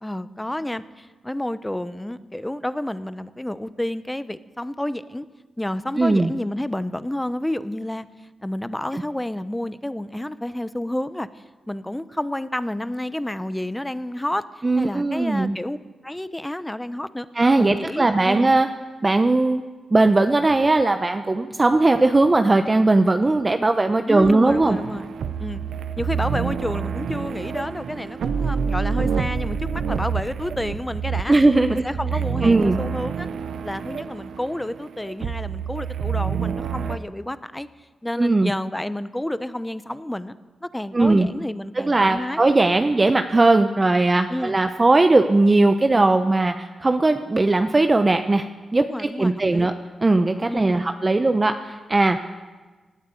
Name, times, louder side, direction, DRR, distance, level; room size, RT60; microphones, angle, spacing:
voice 1, 0.0-5.3 5.6-8.1 8.4-14.5 14.8-15.8 16.0-17.3 17.6-18.5 24.1-25.1 25.4-25.6 26.0-31.4 31.7-33.3 33.6-37.7 38.0-40.3 40.6-42.4 44.3-44.6 48.8-49.7 50.5-50.9, left 1 dB, 10° left, 14 dB, 0.9 m, -30 dB
voice 2, 6.0-6.3 14.6-15.6 17.3-18.7 19.0-19.6 19.9-24.8 31.3-31.8 32.4-32.8 38.2-38.5 40.9-41.3 41.7-48.5 48.7-49.7 50.0-52.4, right 2 dB, 35° right, 7 dB, 0.9 m, -18 dB
sound 1, 24.5-37.0, right 6 dB, 75° right, 0.7 m, -28 dB
18.0 x 9.2 x 8.5 m, 1.3 s
supercardioid pair, 45°, 0 cm